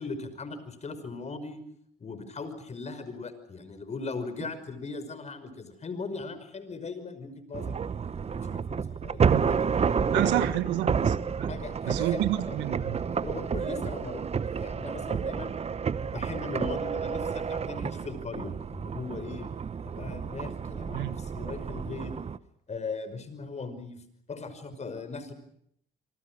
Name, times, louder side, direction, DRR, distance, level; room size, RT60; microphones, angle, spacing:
voice 1, 0.0-1.6 2.0-7.9 8.3-10.6 11.5-12.5 13.1-15.5 16.0-19.5 19.9-22.2 22.7-24.0 24.3-25.3, left 4 dB, 40° left, 5.5 m, -39 dB
sound 1, 7.5-22.4, right 6 dB, 35° right, 1.0 m, -30 dB
voice 2, 10.1-11.5 11.8-13.0 20.9-21.2, right 14 dB, 85° right, 1.6 m, -29 dB
27.0 x 25.0 x 6.2 m
supercardioid pair, 75°, 18 cm